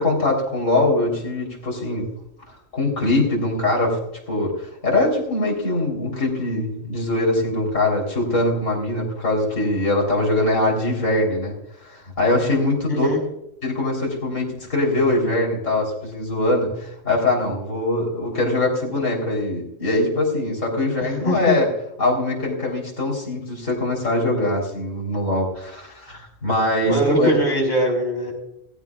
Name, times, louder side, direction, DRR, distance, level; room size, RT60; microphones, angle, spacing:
voice 1, 0.0-2.1 2.7-4.0 4.3-11.5 11.8-13.1 13.6-21.7 22.0-27.3, left 2 dB, 75° left, -2 dB, 4.2 m, -22 dB
voice 2, 12.9-13.2 21.0-21.6 26.9-28.3, right 1 dB, 35° left, 0 dB, 5.5 m, -22 dB
17.0 x 16.0 x 2.4 m, 0.81 s
omnidirectional pair, 1.3 m